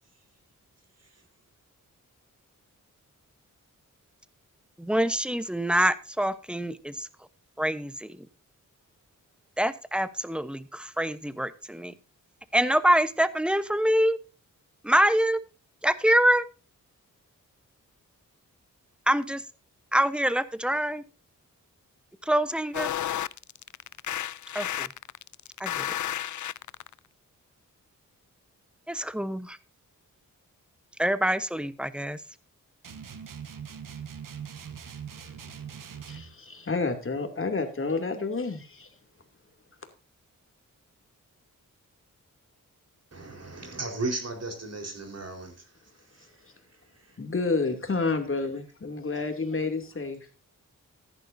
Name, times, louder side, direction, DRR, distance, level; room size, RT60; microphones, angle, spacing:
voice 1, 4.8-6.9 7.6-8.1 9.6-11.9 12.5-14.2 14.8-15.4 15.8-16.4 19.1-19.4 19.9-21.0 22.3-22.9 24.5-24.9 25.6-25.7 28.9-29.6 31.0-32.2, equal, 5° right, 0.9 m, -25 dB
sound 1, 22.7-26.9, left 11 dB, 65° left, 0.5 m, -32 dB
sound 2, 32.8-36.3, right 7 dB, 75° right, 1.3 m, -41 dB
voice 2, 36.0-38.9 47.2-50.3, left 3 dB, 40° left, 2.6 m, -29 dB
voice 3, 43.1-45.7 46.1-46.3 47.0-47.2, right 2 dB, 50° right, 4.3 m, -35 dB
14.5 x 10.5 x 2.7 m
cardioid pair, 70°, 33 cm